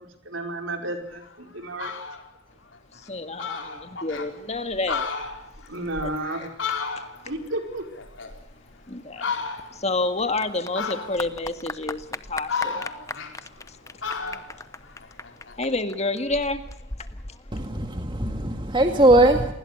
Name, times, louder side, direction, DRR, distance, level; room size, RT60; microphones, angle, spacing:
voice 1, 0.0-1.9 5.7-6.4 7.2-7.9, right 1 dB, 60° right, 5 dB, 4.8 m, -32 dB
Fowl, 1.2-1.3 1.6-2.2 2.7-2.8 3.1-3.2 3.4-4.3 4.7-7.4 7.7-8.7 9.2-9.9 10.7-11.4 12.0-13.7 14.0-15.6, left 5 dB, 60° left, 4.5 m, -33 dB
voice 2, 3.1-3.6 4.0-5.1 8.9-9.2 9.8-12.0 12.3-12.8 15.6-16.6, left 2 dB, 30° left, 8 dB, 1.8 m, -28 dB
Clapping / Applause, 9.3-18.3, left 3 dB, 15° left, 0.9 m, -39 dB
voice 3, 17.5-19.5, right 1 dB, 20° right, 5 dB, 2.0 m, -20 dB
29.0 x 20.5 x 6.7 m, 0.78 s
head